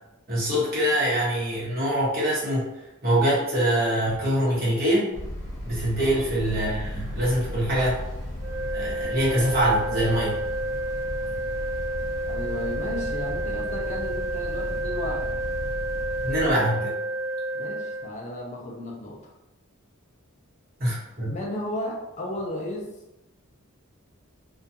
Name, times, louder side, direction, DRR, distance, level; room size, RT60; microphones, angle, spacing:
voice 1, 0.3-2.6 3.0-5.1 5.6-8.0 8.7-10.3 16.2-16.9 20.8-21.3, right 1 dB, 45° right, -8 dB, 1.0 m, -24 dB
sound 1, 5.1-16.5, equal, 50° left, 0.8 m, -35 dB
voice 2, 6.0-6.3 12.2-15.3 17.5-19.3 21.3-22.9, left 1 dB, 35° left, -2 dB, 0.4 m, -34 dB
sound 2, 8.4-18.1, right 1 dB, 65° right, 0.3 m, -30 dB
2.3 x 2.2 x 2.6 m, 0.94 s
head